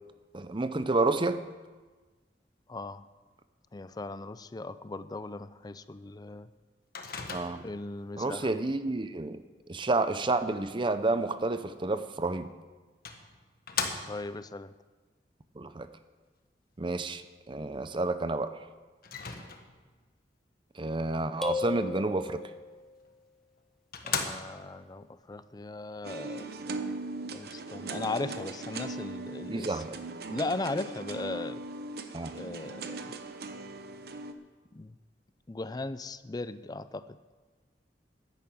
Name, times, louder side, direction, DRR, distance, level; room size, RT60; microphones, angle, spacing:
voice 1, 0.3-1.4 7.3-7.6 8.2-9.4 9.7-12.5 15.6-15.9 16.8-17.2 17.5-18.5 20.8-22.4 29.5-30.0 32.1-32.4, right 2 dB, 30° right, 11 dB, 0.7 m, -30 dB
voice 2, 2.7-3.0 3.7-6.5 7.6-8.5 14.1-14.7 24.0-26.5 27.3-29.7 30.3-31.6 32.3-32.9 34.7-34.9 35.5-37.1, left 2 dB, 20° left, 14 dB, 0.5 m, -37 dB
Microwave oven, 6.9-7.8 12.2-12.3 13.0-14.4 19.0-19.9 23.0-23.1 23.6-23.7 23.9-24.8, left 5 dB, 55° left, 1.3 m, -36 dB
sound 1, 21.4-22.9, left 3 dB, ahead, 0.8 m, -35 dB
sound 2, 26.0-34.3, right 3 dB, 60° right, 0.9 m, -39 dB
11.0 x 10.5 x 7.8 m, 1.3 s
head